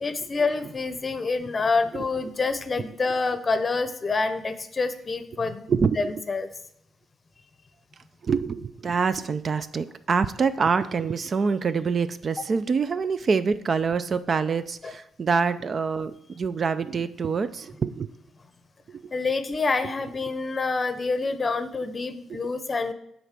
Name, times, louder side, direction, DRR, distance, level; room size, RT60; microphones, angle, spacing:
voice 1, 0.0-5.7 6.0-6.5 12.4-12.5 14.8-14.9 19.1-22.9, left 3 dB, 30° left, 11 dB, 0.7 m, -27 dB
voice 2, 5.7-6.1 8.2-18.1 18.9-19.1, right 5 dB, 45° right, 12 dB, 0.4 m, -25 dB
8.0 x 4.1 x 5.9 m, 0.73 s
cardioid pair, 90°, 0 cm